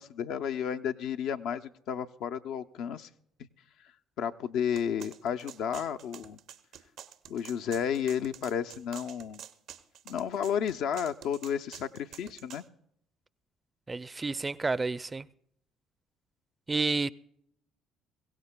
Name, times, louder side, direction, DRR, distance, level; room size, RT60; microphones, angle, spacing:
voice 1, 0.0-3.1 4.2-6.4 7.3-9.4 10.1-12.6, left 8 dB, 70° left, 0.5 m, -32 dB
sound 1, 4.8-12.6, right 9 dB, 75° right, 0.6 m, -48 dB
voice 2, 13.9-15.3 16.7-17.1, right 3 dB, 25° right, 0.4 m, -30 dB
22.5 x 16.5 x 2.2 m
hypercardioid pair, 60°, 0 cm